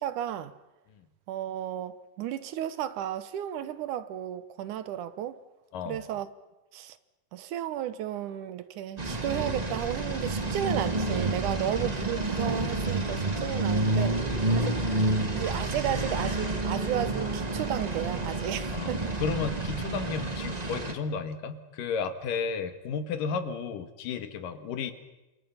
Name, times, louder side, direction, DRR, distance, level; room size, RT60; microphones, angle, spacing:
voice 1, 0.0-0.5 1.3-5.4 5.9-6.3 6.7-7.0 7.3-14.2 14.6-14.7 15.3-19.2, right 11 dB, 75° right, 2.4 m, -33 dB
sound 1, 9.0-20.9, right 2 dB, 20° right, 1.2 m, -29 dB
voice 2, 19.2-24.9, left 5 dB, 85° left, 3.3 m, -33 dB
29.5 x 26.5 x 5.7 m
omnidirectional pair, 3.7 m